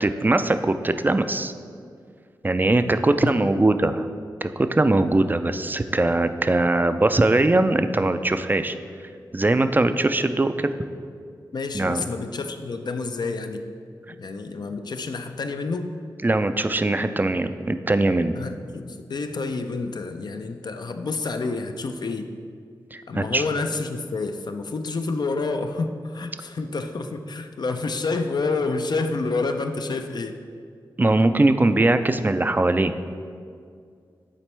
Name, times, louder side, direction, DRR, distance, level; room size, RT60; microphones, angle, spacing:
voice 1, 0.0-1.5 2.4-4.1 4.4-8.8 9.3-10.8 11.7-12.0 16.2-18.4 22.9-23.4 31.0-32.9, right 2 dB, 25° right, 10 dB, 0.3 m, -21 dB
voice 2, 3.2-3.6 11.5-13.6 14.1-15.9 18.3-22.3 23.1-30.4, left 3 dB, 60° left, 7 dB, 0.4 m, -29 dB
7.4 x 4.2 x 3.3 m, 2.2 s
cardioid pair, 45°, 8 cm